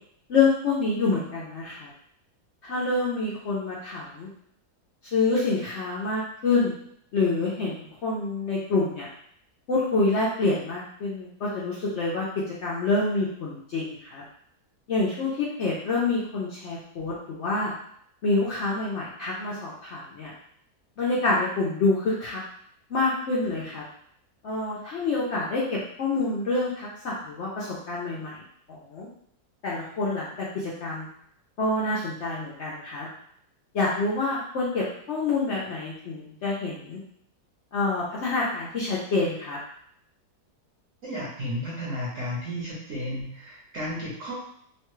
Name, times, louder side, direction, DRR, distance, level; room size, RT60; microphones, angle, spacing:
voice 1, 0.3-1.9 2.6-4.3 5.0-6.7 7.1-9.1 9.7-14.2 14.9-17.7 18.2-20.3 21.0-22.4 22.9-23.8 24.4-28.4 28.7-29.1 29.6-31.1 31.6-33.1 33.7-37.0 37.7-39.6, left 3 dB, 65° left, -6 dB, 0.7 m, -27 dB
voice 2, 41.0-44.4, equal, 60° right, -5 dB, 1.0 m, -33 dB
3.1 x 2.2 x 3.0 m, 0.68 s
omnidirectional pair, 1.7 m